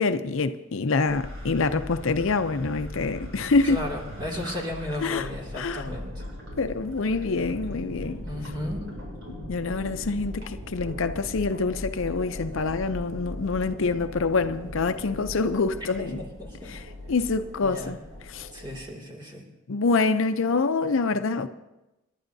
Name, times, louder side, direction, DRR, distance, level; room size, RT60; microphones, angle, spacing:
voice 1, 0.0-3.8 5.0-5.3 5.6-5.8 6.6-8.2 9.5-16.2 16.7-16.8 17.1-18.0 18.3-18.5 19.7-21.5, left 4 dB, 70° left, 0.6 m, -26 dB
sound 1, 1.1-18.8, left 1 dB, 75° right, 6.0 m, -39 dB
voice 2, 3.6-6.2 8.2-8.8 16.0-16.7 17.6-18.0 18.5-19.4, left 1 dB, 20° right, 2.4 m, -35 dB
28.5 x 11.5 x 2.7 m
head